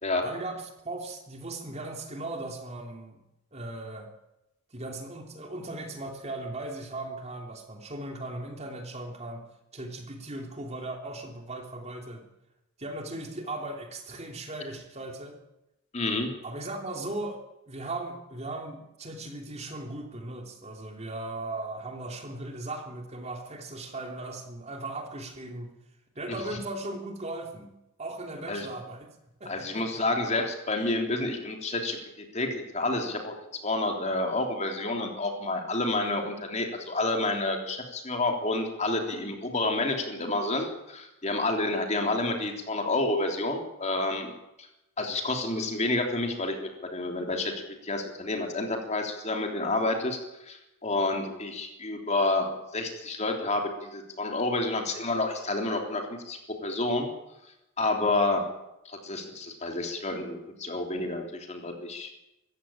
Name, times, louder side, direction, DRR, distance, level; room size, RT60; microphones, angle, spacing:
voice 1, 0.2-3.2 3.5-4.1 4.7-9.4 9.7-12.3 12.8-15.4 16.4-25.7 26.1-27.7 28.0-29.1 29.4-30.0, right 2 dB, 30° right, 3 dB, 3.0 m, -38 dB
voice 2, 15.9-16.3 26.3-26.4 28.5-28.7 29.5-33.3 33.6-44.3 44.6-44.7 45.0-50.2 50.5-57.1 57.8-58.5 58.8-62.1, left 2 dB, 30° left, 3 dB, 3.3 m, -29 dB
24.0 x 15.0 x 8.8 m, 0.92 s
head